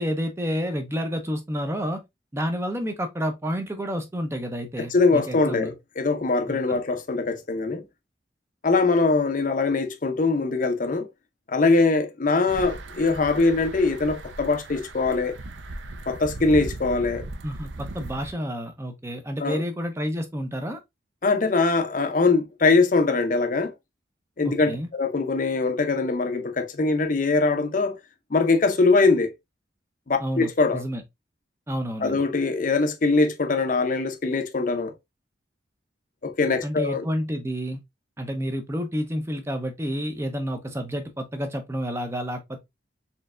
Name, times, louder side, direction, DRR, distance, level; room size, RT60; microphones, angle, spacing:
voice 1, 0.0-2.0 2.3-5.7 6.5-6.8 17.4-20.8 24.4-24.9 30.2-31.0 31.7-32.2 36.6-37.8 38.2-42.6, equal, 15° right, 0.5 m, -30 dB
voice 2, 4.9-7.8 8.6-11.1 11.5-15.4 16.1-17.3 19.4-19.6 21.2-23.7 24.4-28.0 28.3-29.3 30.1-30.8 32.0-34.9 36.2-37.1, left 3 dB, 45° left, 0.6 m, -22 dB
sound 1, 12.5-18.3, right 2 dB, 80° right, 0.6 m, -38 dB
4.3 x 3.2 x 2.4 m
head